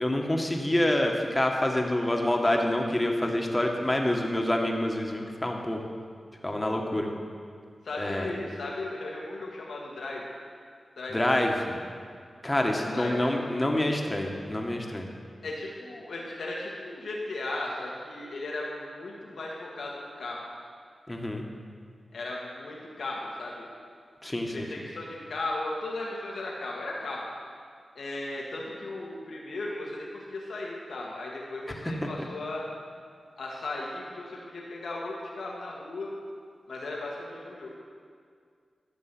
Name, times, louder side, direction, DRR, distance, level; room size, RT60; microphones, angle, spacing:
voice 1, 0.0-5.8 6.4-7.1 8.0-8.3 11.1-11.8 12.4-15.1 21.1-21.4 24.2-24.7, left 1 dB, 20° left, 2 dB, 1.7 m, -27 dB
voice 2, 7.8-10.3 11.0-11.3 12.8-13.5 15.4-20.4 22.1-23.7 24.5-27.2 27.9-32.7 33.4-36.1 36.7-37.8, left 2 dB, 80° left, -3 dB, 1.7 m, -36 dB
12.0 x 7.1 x 6.2 m, 2.1 s
cardioid pair, 40°, 0 cm